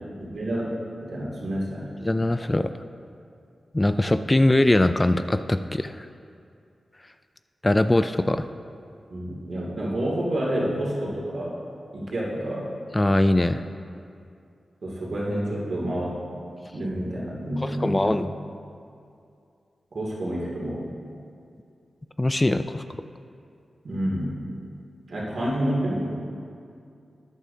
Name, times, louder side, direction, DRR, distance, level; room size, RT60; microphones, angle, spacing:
voice 1, 0.3-0.8 1.1-1.9 9.1-11.6 11.9-12.7 14.8-16.2 16.7-18.1 19.9-20.9 23.8-24.4 25.1-26.1, right 1 dB, 65° right, -4 dB, 2.5 m, -28 dB
voice 2, 2.0-2.7 3.7-6.1 7.6-8.5 12.9-13.6 17.6-18.3 22.2-23.0, left 1 dB, 20° left, 10 dB, 0.3 m, -22 dB
13.0 x 9.0 x 2.8 m, 2.5 s
cardioid pair, 60°, 0 cm